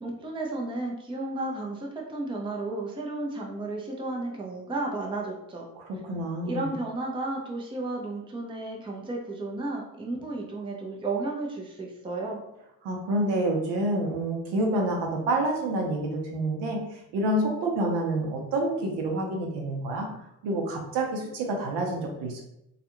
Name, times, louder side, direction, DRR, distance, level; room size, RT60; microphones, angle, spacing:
voice 1, 0.0-5.7 6.4-12.4, right 2 dB, 10° right, -1 dB, 0.6 m, -33 dB
voice 2, 5.8-6.7 12.8-20.1 20.4-22.4, right 1 dB, 60° right, 1 dB, 0.8 m, -28 dB
2.4 x 2.4 x 2.9 m, 0.83 s
hypercardioid pair, 65°, 47 cm